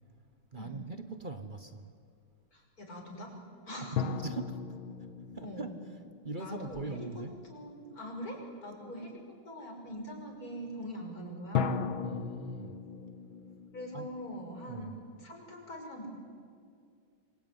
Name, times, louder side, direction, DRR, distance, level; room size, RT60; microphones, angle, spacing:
voice 1, 0.5-1.9 3.9-4.6 5.3-5.8 6.2-7.3 12.0-12.8 13.9-14.1 14.7-15.0, right 3 dB, 35° right, 9 dB, 0.9 m, -41 dB
voice 2, 2.5-3.3 3.7-3.9 5.4-5.7 6.4-7.2 7.5-9.2 9.4-11.8 13.7-14.9 15.2-16.1, equal, 40° left, 1 dB, 6.3 m, -43 dB
sound 1, 4.0-7.3 11.5-14.9, left 6 dB, 70° left, 1.9 m, -37 dB
27.0 x 22.5 x 9.5 m, 2.2 s
omnidirectional pair, 2.4 m